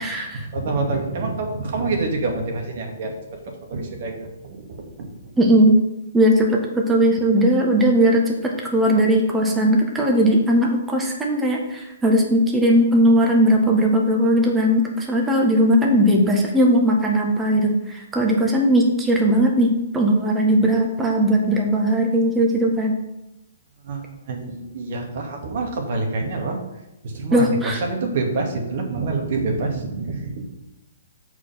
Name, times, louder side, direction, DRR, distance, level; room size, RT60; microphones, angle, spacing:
voice 1, 0.0-0.4 5.4-5.8 6.1-8.3 8.7-22.9 27.3-27.8, equal, 10° right, 0 dB, 1.5 m, -18 dB
voice 2, 0.5-3.1 3.7-4.2 4.4-5.1 23.8-26.6 27.0-27.5 27.8-30.4, right 3 dB, 55° right, 2 dB, 2.0 m, -26 dB
8.4 x 4.9 x 5.6 m, 0.91 s
figure-of-eight pair, 120°, 0 cm